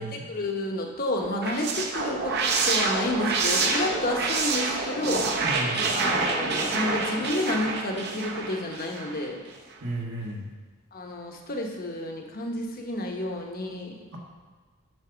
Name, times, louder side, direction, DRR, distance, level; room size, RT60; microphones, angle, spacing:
voice 1, 0.0-2.3 2.6-5.3 5.9-9.4 10.9-13.9, left 1 dB, 45° left, 2 dB, 1.0 m, -30 dB
sound 1, 1.2-9.3, right 3 dB, 50° right, 0.9 m, -27 dB
voice 2, 5.4-5.9 9.8-10.5 14.1-14.2, right 1 dB, 85° right, -2 dB, 1.7 m, -33 dB
8.9 x 4.1 x 6.8 m, 1.4 s
head